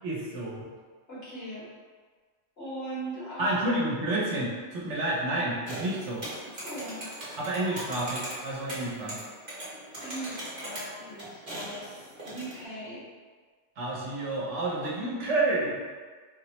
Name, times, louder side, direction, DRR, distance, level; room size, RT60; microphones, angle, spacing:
voice 1, 0.0-0.6 3.4-6.2 7.4-9.2 13.8-15.7, right 2 dB, 75° right, -4 dB, 1.0 m, -29 dB
voice 2, 1.1-1.7 2.6-3.6 6.4-7.1 7.6-8.0 10.0-13.1, right 1 dB, 55° left, -11 dB, 1.6 m, -40 dB
sound 1, 5.6-12.7, right 1 dB, 40° right, 0.9 m, -40 dB
3.9 x 2.0 x 2.9 m, 1.5 s
omnidirectional pair, 1.2 m